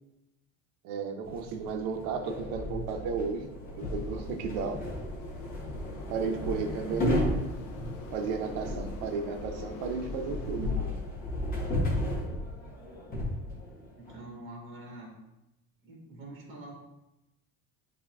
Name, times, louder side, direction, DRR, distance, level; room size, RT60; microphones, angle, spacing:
voice 1, 0.8-3.5 3.8-4.8 6.1-7.2 8.1-11.0, right 5 dB, 75° right, 5 dB, 0.7 m, -34 dB
sound 1, 1.2-14.2, left 1 dB, 25° left, 0.8 m, -34 dB
sound 2, 3.8-10.7, left 3 dB, 60° left, 0.6 m, -47 dB
voice 2, 14.0-15.1 15.8-16.8, right 1 dB, 40° right, -1 dB, 1.3 m, -45 dB
8.1 x 2.8 x 2.3 m, 0.93 s
cardioid pair, 155°, 33 cm